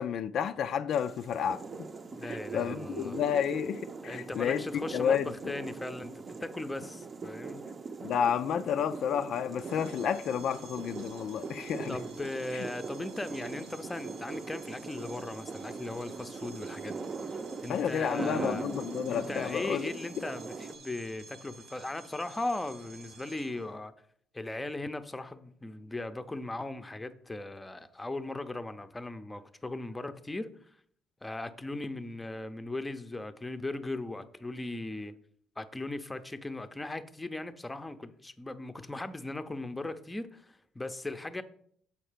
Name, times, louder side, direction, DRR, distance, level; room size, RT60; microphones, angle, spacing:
voice 1, 0.0-1.6 2.2-4.6 4.9-5.3 8.0-12.0 12.5-12.7 17.7-19.9, left 8 dB, 65° left, 0.3 m, -31 dB
sound 1, 0.9-20.8, right 4 dB, 35° right, 0.6 m, -41 dB
voice 2, 2.1-3.2 4.0-7.6 11.9-17.0 17.6-18.7 19.1-23.9 24.3-30.5 31.2-35.1 35.6-41.4, left 2 dB, 15° left, 0.6 m, -38 dB
sound 2, 9.6-23.8, right 3 dB, 90° right, 1.3 m, -53 dB
7.1 x 4.4 x 5.0 m
cardioid pair, 85°, 0 cm